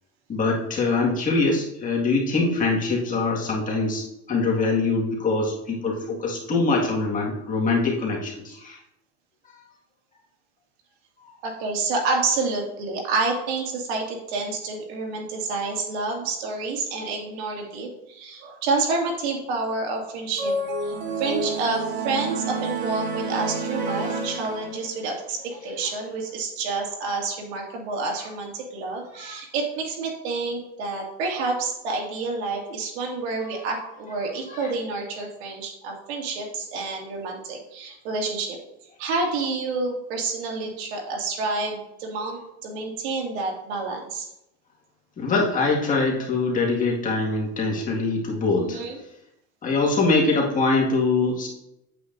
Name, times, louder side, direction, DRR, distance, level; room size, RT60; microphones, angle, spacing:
voice 1, 0.3-8.8 25.6-25.8 29.1-29.4 33.5-33.6 34.5-34.7 45.2-48.8 49.6-51.5, left 3 dB, 25° left, -2 dB, 1.9 m, -23 dB
voice 2, 11.4-20.5 20.8-38.6 39.0-44.3 48.5-49.0, right 3 dB, 80° right, 0 dB, 2.4 m, -29 dB
sound 1, 20.4-25.0, right 3 dB, 35° right, 1.2 m, -29 dB
8.3 x 8.2 x 2.6 m, 0.84 s
supercardioid pair, 140°, 32 cm